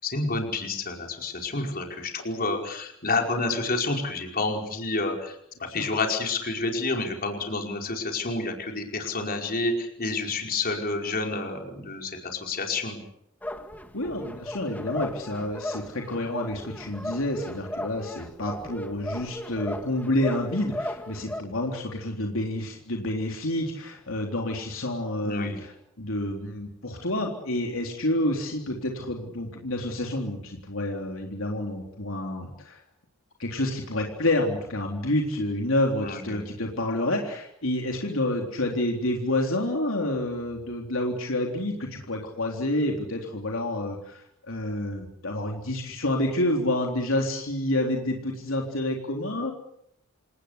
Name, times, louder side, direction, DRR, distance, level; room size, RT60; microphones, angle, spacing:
voice 1, 0.0-13.0 25.2-25.6 36.0-36.4, left 3 dB, 45° left, 2 dB, 5.1 m, -29 dB
sound 1, 13.4-21.4, left 1 dB, 10° left, 1.9 m, -36 dB
voice 2, 13.9-32.8 33.4-49.5, left 1 dB, 65° left, 0 dB, 3.8 m, -29 dB
28.0 x 19.0 x 8.3 m, 0.74 s
head